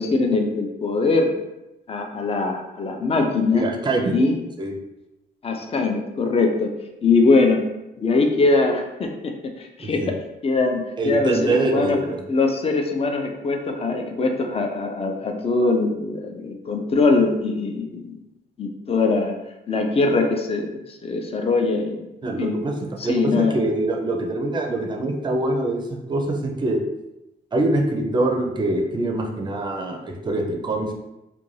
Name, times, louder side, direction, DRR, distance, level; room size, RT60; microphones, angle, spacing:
voice 1, 0.0-1.4 1.9-3.7 4.1-4.4 5.4-6.7 7.0-7.7 8.0-10.0 10.4-12.0 12.3-18.2 18.6-19.3 19.7-22.1 22.4-22.5 23.0-23.6, left 3 dB, 30° left, 4 dB, 0.4 m, -22 dB
voice 2, 3.5-4.2 4.6-4.8 9.8-10.1 11.0-12.2 22.2-22.7 23.0-26.8 27.5-30.9, right 2 dB, 25° right, 2 dB, 0.4 m, -24 dB
2.5 x 2.2 x 3.1 m, 0.93 s
cardioid pair, 105°, 19 cm